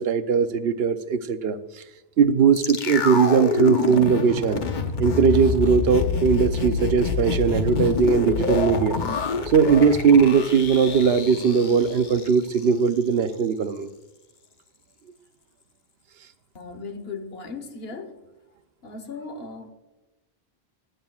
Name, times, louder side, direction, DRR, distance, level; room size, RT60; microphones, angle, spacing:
voice 1, 0.0-1.6 2.2-4.6 5.0-9.0 9.5-13.9, right 6 dB, 75° right, 11 dB, 0.9 m, -19 dB
sound 1, 2.6-12.7 13.0-13.1, left 5 dB, 50° left, 0.9 m, -27 dB
voice 2, 16.5-18.2 18.8-19.7, left 4 dB, 75° left, 8 dB, 1.3 m, -37 dB
21.0 x 9.1 x 2.3 m, 1.0 s
omnidirectional pair, 1.0 m